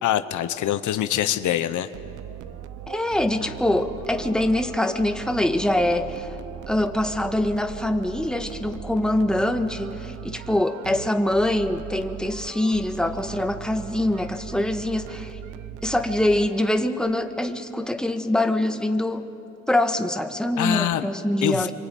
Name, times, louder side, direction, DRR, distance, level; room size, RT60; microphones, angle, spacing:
voice 1, 0.0-1.9 20.6-21.1 21.4-21.7, left 11 dB, 75° left, 11 dB, 1.0 m, -24 dB
sound 1, 1.9-16.9, right 11 dB, 85° right, 0.9 m, -39 dB
voice 2, 2.9-6.3 6.7-15.4 15.8-19.2 19.7-21.7, left 1 dB, ahead, 6 dB, 1.6 m, -24 dB
25.5 x 25.0 x 9.3 m, 2.9 s
cardioid pair, 90°, 30 cm